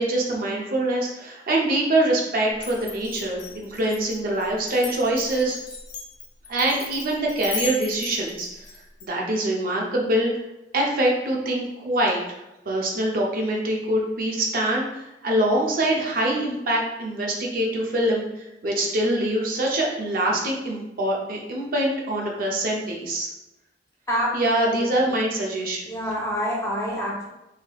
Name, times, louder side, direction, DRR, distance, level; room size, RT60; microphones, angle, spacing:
voice 1, 0.0-5.6 6.5-8.5 9.0-10.3 10.7-12.2 12.7-18.2 18.6-23.3 24.3-25.9, right 1 dB, 55° right, -1 dB, 0.5 m, -24 dB
Glass, 2.6-9.1, left 4 dB, 65° left, 0.6 m, -36 dB
voice 2, 25.9-27.3, equal, 15° left, -4 dB, 0.7 m, -27 dB
3.2 x 2.8 x 2.3 m, 0.95 s
head